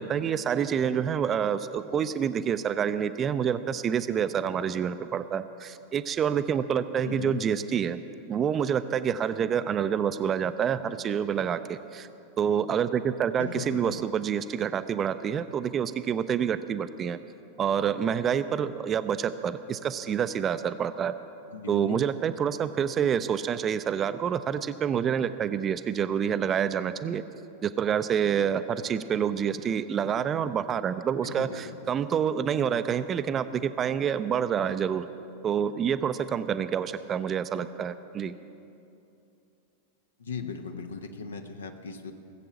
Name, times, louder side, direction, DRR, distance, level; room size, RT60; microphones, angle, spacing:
voice 1, 0.0-8.0 8.3-12.1 12.4-17.2 17.6-21.1 21.7-27.2 27.6-35.1 35.4-38.3, right 8 dB, 25° right, 12 dB, 0.5 m, -27 dB
voice 2, 7.0-7.4 13.4-14.0 21.5-22.0 31.2-31.8 40.2-42.1, left 5 dB, 70° left, 7 dB, 1.0 m, -38 dB
19.0 x 7.7 x 7.3 m, 2.7 s
figure-of-eight pair, 90°, 0 cm